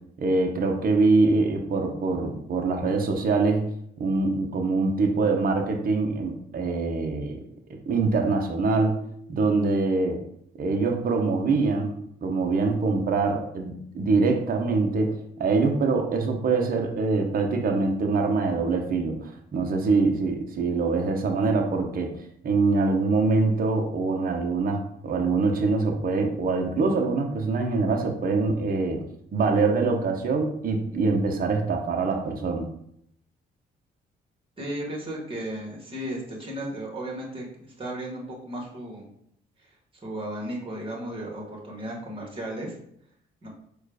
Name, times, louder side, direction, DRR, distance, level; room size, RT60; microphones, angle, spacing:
voice 1, 0.2-3.6 4.0-7.4 7.7-9.0 9.3-10.2 10.6-22.1 22.4-29.0 29.3-32.7, right 3 dB, 45° right, 3 dB, 0.8 m, -24 dB
voice 2, 34.6-39.1 40.0-42.7 43.4-43.5, right 1 dB, 25° right, -2 dB, 1.7 m, -35 dB
4.4 x 2.4 x 4.8 m, 0.72 s
cardioid pair, 90°, 20 cm